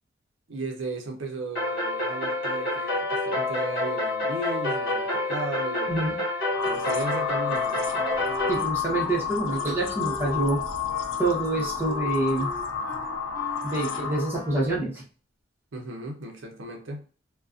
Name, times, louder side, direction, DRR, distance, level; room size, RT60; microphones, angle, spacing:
voice 1, 0.5-6.0 6.6-8.1 15.7-17.1, right 2 dB, 70° right, 0.6 m, -35 dB
sound 1, 1.5-8.6, left 2 dB, 55° left, 1.2 m, -28 dB
sound 2, 6.4-14.5, left 7 dB, 75° left, 0.5 m, -31 dB
Wind instrument woodwind instrument, 7.5-9.1 9.5-14.8, left 2 dB, 20° left, 0.4 m, -42 dB
voice 2, 8.5-10.6 11.2-12.5 13.6-15.0, right 2 dB, 10° right, 0.7 m, -26 dB
2.4 x 2.1 x 2.4 m
head